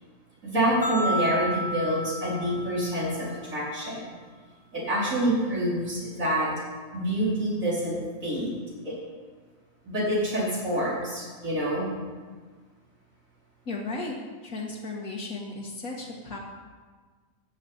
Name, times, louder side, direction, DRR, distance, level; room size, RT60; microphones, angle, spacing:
voice 1, 0.4-4.1 4.7-6.5 6.9-8.0 8.2-8.5 8.8-9.0 9.8-11.9, right 1 dB, 70° right, -6 dB, 4.9 m, -27 dB
sound 1, 0.8-3.2, right 1 dB, 15° right, 2.2 m, -31 dB
voice 2, 13.7-14.1 14.4-16.4, left 3 dB, 85° left, -3 dB, 2.1 m, -35 dB
12.5 x 7.8 x 8.8 m, 1.4 s
omnidirectional pair, 1.5 m